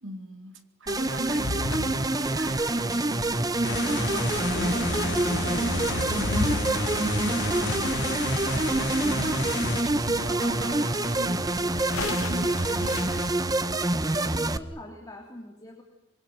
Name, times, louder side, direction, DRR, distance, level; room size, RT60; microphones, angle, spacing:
voice 1, 0.0-13.4 14.2-14.3, right 1 dB, 60° right, 3.1 m, -41 dB
sound 1, 0.9-13.3, left 3 dB, 70° left, 0.9 m, -37 dB
sound 2, 0.9-14.6, right 2 dB, 20° right, 0.9 m, -26 dB
sound 3, 3.6-9.8, left 3 dB, 55° left, 2.7 m, -32 dB
voice 2, 14.2-15.8, left 1 dB, 15° left, 3.3 m, -43 dB
26.0 x 23.0 x 9.5 m
head